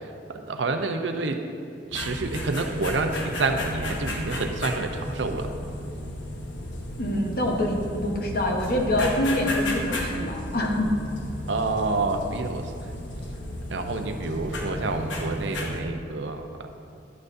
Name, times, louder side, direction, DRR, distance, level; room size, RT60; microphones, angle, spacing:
voice 1, 0.3-1.4 1.9-5.5 11.5-12.7 13.7-16.7, right 3 dB, 80° right, 6 dB, 0.6 m, -28 dB
sound 1, 1.9-15.8, left 1 dB, 85° left, 1.0 m, -34 dB
voice 2, 7.0-11.0, left 1 dB, 55° left, 1 dB, 1.0 m, -25 dB
11.0 x 8.6 x 2.6 m, 2.6 s
head